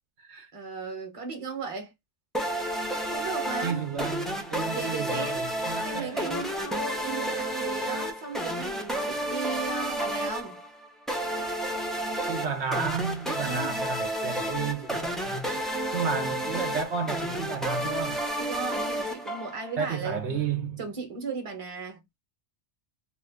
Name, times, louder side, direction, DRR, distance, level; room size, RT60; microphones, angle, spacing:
voice 1, 0.5-1.9 3.1-3.8 4.7-5.5 5.8-10.6 13.4-13.8 18.4-20.2 20.8-22.2, right 4 dB, 30° right, 0.9 m, -36 dB
sound 1, 2.3-19.8, right 1 dB, ahead, 0.4 m, -31 dB
voice 2, 3.6-6.2 12.3-15.6 15.9-18.2 19.8-20.8, right 6 dB, 75° right, 1.0 m, -32 dB
2.7 x 2.5 x 3.4 m
omnidirectional pair, 1.2 m